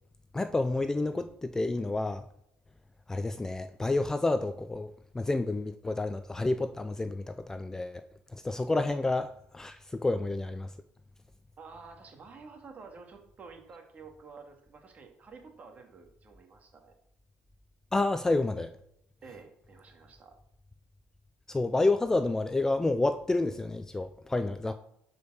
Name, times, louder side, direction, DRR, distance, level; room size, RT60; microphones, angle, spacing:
voice 1, 0.3-2.2 3.1-4.9 5.1-8.0 8.3-10.7 17.9-18.7 21.5-24.7, left 2 dB, 10° left, 0.5 m, -29 dB
voice 2, 11.6-16.9 19.2-20.4, right 4 dB, 35° right, 2.5 m, -50 dB
11.5 x 5.3 x 6.5 m
cardioid pair, 130°, 4 cm